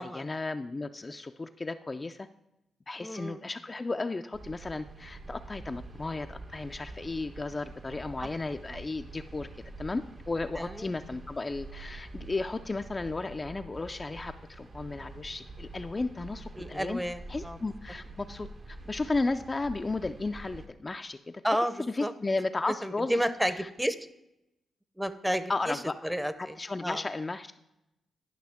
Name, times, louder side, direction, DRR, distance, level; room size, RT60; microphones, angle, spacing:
voice 1, 0.0-2.3 2.9-9.5 9.8-17.0 17.3-23.2 23.6-23.7 25.5-25.9 26.4-27.6, left 3 dB, 30° left, 7 dB, 0.4 m, -34 dB
voice 2, 3.0-3.4 8.2-8.3 10.6-10.9 16.6-17.6 21.4-22.1 22.8-24.0 25.0-25.8 26.0-26.5 26.8-27.0, equal, 5° right, 12 dB, 0.7 m, -31 dB
sound 1, 4.3-20.7, right 2 dB, 50° right, 0.9 m, -46 dB
11.5 x 5.6 x 3.5 m, 0.89 s
supercardioid pair, 55°, 0 cm